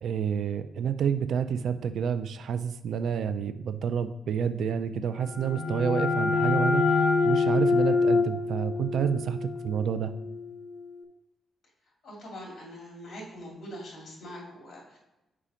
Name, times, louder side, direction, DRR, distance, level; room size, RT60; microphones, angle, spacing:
voice 1, 0.0-10.1, right 7 dB, 70° right, 11 dB, 0.4 m, -29 dB
sound 1, 5.1-10.7, left 4 dB, 60° left, 0.8 m, -26 dB
voice 2, 12.0-15.0, equal, 45° left, -1 dB, 2.5 m, -43 dB
5.6 x 4.9 x 5.0 m, 0.96 s
wide cardioid pair, 165°, 0 cm